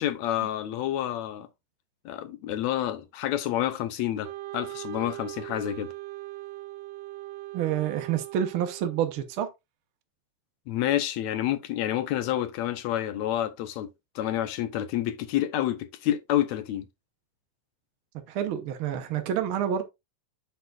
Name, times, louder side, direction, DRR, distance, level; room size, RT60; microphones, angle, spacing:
voice 1, 0.0-1.5 2.1-5.9 10.7-16.9, left 12 dB, 75° left, 1.9 m, -29 dB
Wind instrument woodwind instrument, 4.2-9.4, right 17 dB, 85° right, 2.1 m, -40 dB
voice 2, 7.5-9.5 18.3-19.8, right 9 dB, 70° right, 1.3 m, -28 dB
7.9 x 6.9 x 2.4 m
omnidirectional pair, 3.4 m